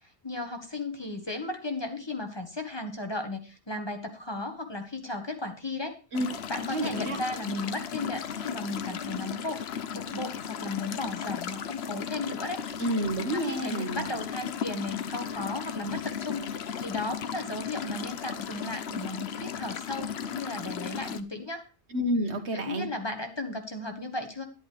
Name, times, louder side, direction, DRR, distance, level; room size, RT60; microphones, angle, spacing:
voice 1, 0.0-6.0 6.5-12.6 13.3-21.6 22.5-24.5, left 2 dB, 25° left, 5 dB, 1.5 m, -35 dB
sound 1, 6.1-21.2, left 8 dB, 70° left, 1.0 m, -36 dB
voice 2, 6.7-7.2 12.8-14.1 21.9-22.9, equal, 90° right, 7 dB, 1.7 m, -29 dB
11.0 x 11.0 x 3.3 m, 0.33 s
omnidirectional pair, 1.1 m